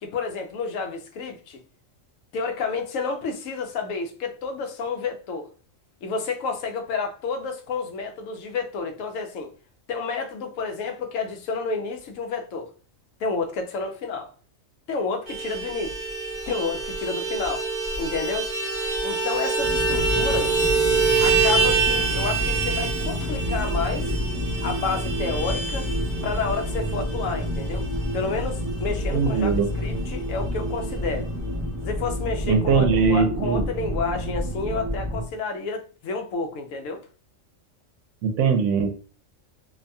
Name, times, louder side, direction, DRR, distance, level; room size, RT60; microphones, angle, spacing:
voice 1, 0.0-1.6 2.3-5.5 6.0-9.5 9.9-12.7 13.2-14.3 14.9-16.0 16.5-17.7 18.0-18.5 19.0-20.6 21.2-24.1 24.6-25.9 26.2-27.9 28.1-31.3 31.8-37.0, left 4 dB, 80° left, 1.0 m, -30 dB
Vehicle horn car horn honking, 15.3-29.2 29.4-29.6 29.9-30.1 30.3-31.0, right 4 dB, 45° right, 0.7 m, -26 dB
sound 1, 19.6-35.3, equal, 15° right, 0.8 m, -29 dB
voice 2, 29.1-29.7 32.5-33.7 38.2-39.0, right 5 dB, 75° right, 0.9 m, -21 dB
2.6 x 2.6 x 2.2 m
omnidirectional pair, 1.3 m